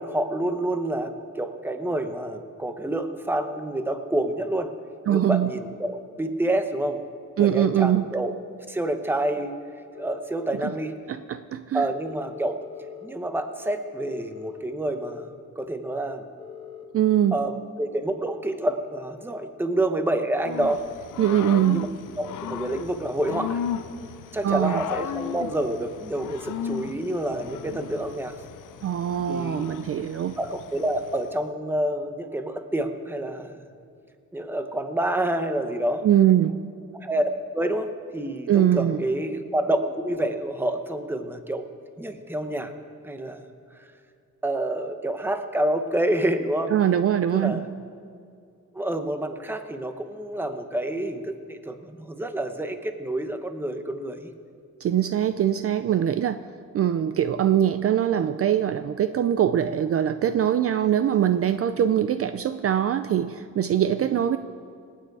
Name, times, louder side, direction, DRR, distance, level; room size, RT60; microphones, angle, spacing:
voice 1, 0.0-4.7 5.1-7.0 7.4-8.3 8.7-9.5 10.0-10.9 11.7-12.6 13.0-16.2 17.3-20.8 21.7-21.9 22.2-23.6 24.3-28.3 29.3-29.7 30.4-33.6 34.3-36.0 36.9-41.6 42.0-42.7 43.0-43.4 44.4-46.7 47.3-47.7 48.7-54.3, right 1 dB, 5° right, 7 dB, 0.8 m, -28 dB
voice 2, 5.1-5.5 7.4-8.0 10.6-10.7 11.1-11.9 16.9-17.4 21.2-21.8 24.4-24.8 28.8-30.4 36.0-36.6 38.5-39.0 46.7-47.6 54.8-56.4 56.7-64.4, right 10 dB, 50° right, 11 dB, 0.4 m, -22 dB
sound 1, 9.9-10.8 11.9-13.1 14.2-15.3 16.4-17.4, left 9 dB, 20° left, 1.3 m, -42 dB
Growling / Cricket, 20.4-31.3, left 8 dB, 80° left, 0.7 m, -36 dB
25.5 x 9.2 x 4.8 m, 2.4 s
wide cardioid pair, 180°, 31 cm